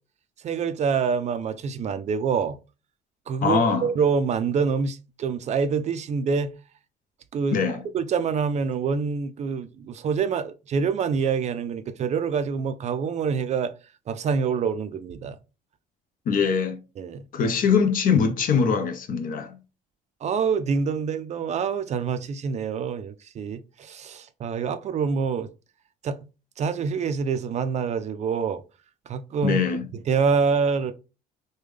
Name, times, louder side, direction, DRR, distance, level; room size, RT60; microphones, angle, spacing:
voice 1, 0.4-2.6 3.3-6.5 7.3-7.6 7.9-13.7 14.1-15.4 17.0-17.3 20.2-25.5 26.0-26.2 26.6-28.6 29.1-29.6 29.9-30.9, right 5 dB, 40° right, 0.4 m, -26 dB
voice 2, 3.4-3.9 7.5-7.8 16.3-16.8 17.3-19.5 29.4-29.8, left 6 dB, 55° left, 0.6 m, -22 dB
3.3 x 2.2 x 3.2 m
cardioid pair, 110°, 17 cm